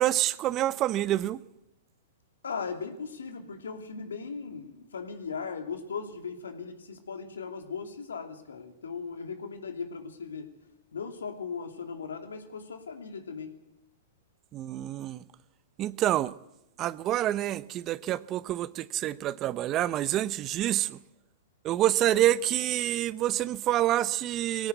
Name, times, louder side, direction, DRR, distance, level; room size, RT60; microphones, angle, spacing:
voice 1, 0.0-1.4 14.5-15.2 15.8-16.3 16.8-21.0 21.6-24.7, right 13 dB, 35° right, 0.7 m, -27 dB
voice 2, 2.4-10.5 10.9-13.5, left 5 dB, 85° left, 2.9 m, -38 dB
21.0 x 17.0 x 8.1 m
hypercardioid pair, 120°, 0 cm